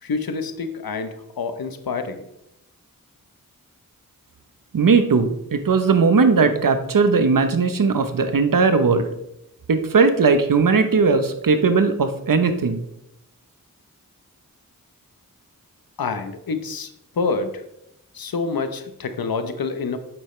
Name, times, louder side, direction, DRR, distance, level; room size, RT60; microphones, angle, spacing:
voice 1, 0.0-2.2 16.0-17.6 18.1-20.0, left 4 dB, 80° left, 9 dB, 1.0 m, -27 dB
voice 2, 4.7-9.1 9.7-12.8, right 4 dB, 65° right, 9 dB, 1.0 m, -18 dB
8.8 x 7.8 x 3.3 m, 0.83 s
cardioid pair, 50°, 35 cm